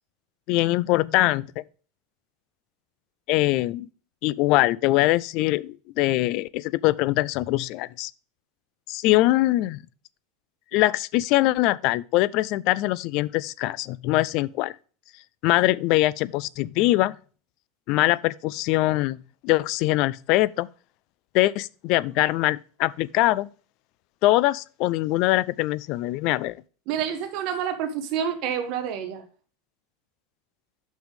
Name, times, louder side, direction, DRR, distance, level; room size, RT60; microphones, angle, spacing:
voice 1, 0.5-1.6 3.3-3.9 4.2-8.1 8.9-9.8 10.7-14.7 15.4-17.2 17.9-19.2 19.4-20.7 21.3-23.5 24.2-26.6, left 18 dB, 45° left, 0.3 m, -23 dB
voice 2, 26.9-29.2, right 8 dB, 45° right, 1.4 m, -28 dB
6.0 x 5.5 x 5.1 m
supercardioid pair, 160°, 0 cm